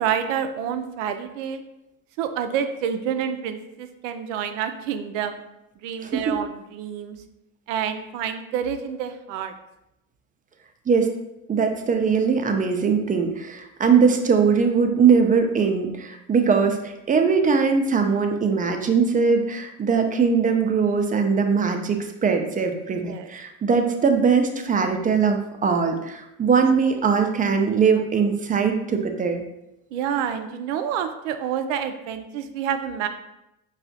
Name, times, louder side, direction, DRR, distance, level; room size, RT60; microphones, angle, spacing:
voice 1, 0.0-1.6 2.2-5.4 5.8-7.2 7.7-9.5 22.9-23.3 29.9-33.1, right 8 dB, 75° right, 8 dB, 0.5 m, -28 dB
voice 2, 6.0-6.3 10.9-11.1 11.5-29.4, right 5 dB, 20° right, 4 dB, 0.5 m, -21 dB
4.8 x 2.4 x 2.6 m, 0.89 s
hypercardioid pair, 70°, 38 cm